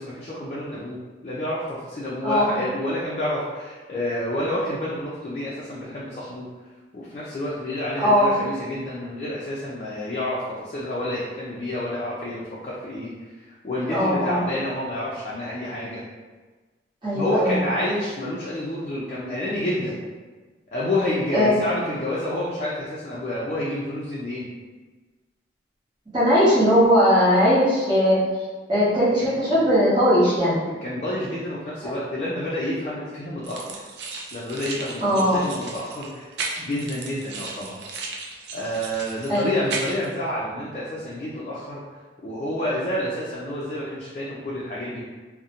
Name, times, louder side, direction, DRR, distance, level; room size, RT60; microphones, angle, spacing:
voice 1, 0.0-6.4 6.9-13.1 13.6-16.0 17.2-20.0 20.7-24.5 30.8-33.8 34.3-37.8 38.5-41.8 42.2-45.1, left 1 dB, 40° left, -7 dB, 0.4 m, -29 dB
voice 2, 2.2-2.6 8.0-8.3 13.9-14.4 17.0-17.6 21.3-21.7 26.1-28.2 28.7-30.6 35.0-35.4 39.3-39.4, equal, 25° right, -12 dB, 0.8 m, -19 dB
sound 1, 33.4-40.1, right 4 dB, 70° right, 0.3 m, -35 dB
2.5 x 2.0 x 2.8 m, 1.3 s
head